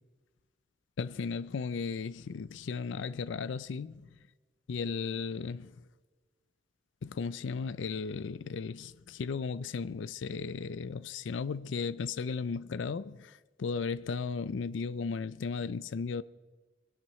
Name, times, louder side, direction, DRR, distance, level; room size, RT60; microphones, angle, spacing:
voice 1, 1.0-4.1 4.7-5.8 7.0-16.2, left 5 dB, 75° left, 0.4 m, -35 dB
23.5 x 11.5 x 3.1 m
head